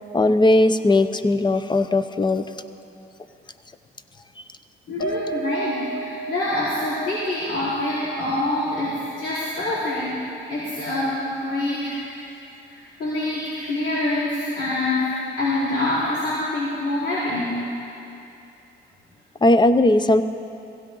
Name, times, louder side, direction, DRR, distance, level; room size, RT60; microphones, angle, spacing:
voice 1, 0.1-2.4 19.4-20.2, left 2 dB, 20° left, 11 dB, 0.7 m, -18 dB
voice 2, 4.9-12.1 12.7-15.1 15.4-17.5, left 2 dB, 60° left, -12 dB, 4.4 m, -25 dB
Piano, 5.0-9.5 9.8-10.0 10.4-10.5, right 4 dB, 90° left, 2.5 m, -34 dB
17.0 x 16.0 x 3.9 m, 2.7 s
cardioid pair, 90°, 20 cm